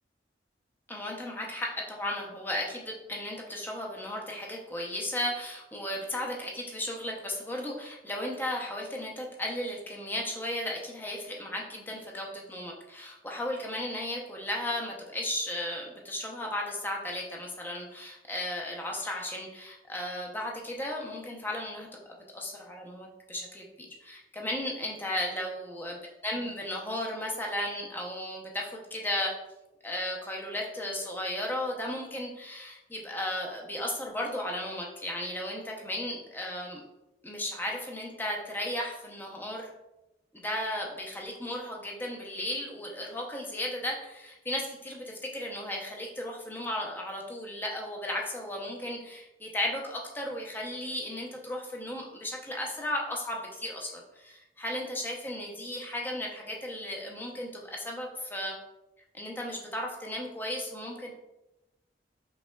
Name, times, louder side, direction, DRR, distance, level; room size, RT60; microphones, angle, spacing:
voice 1, 0.9-26.0 26.2-29.3 29.8-36.8 37.2-39.7 40.3-58.5 59.1-61.1, left 1 dB, 10° left, -1 dB, 0.6 m, -35 dB
5.4 x 3.3 x 2.3 m, 0.95 s
head